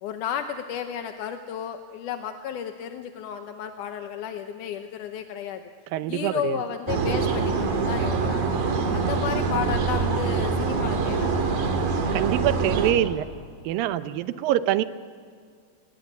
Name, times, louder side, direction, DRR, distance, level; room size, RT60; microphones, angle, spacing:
voice 1, 0.0-5.6 6.1-8.6 8.9-11.5, left 9 dB, 75° left, 7 dB, 2.0 m, -33 dB
voice 2, 5.9-6.6 12.1-13.3 13.6-14.8, right 13 dB, 75° right, 13 dB, 2.2 m, -25 dB
sound 1, 6.9-12.9, right 4 dB, 60° right, 3.7 m, -25 dB
29.5 x 19.0 x 8.4 m, 2.1 s
omnidirectional pair, 4.5 m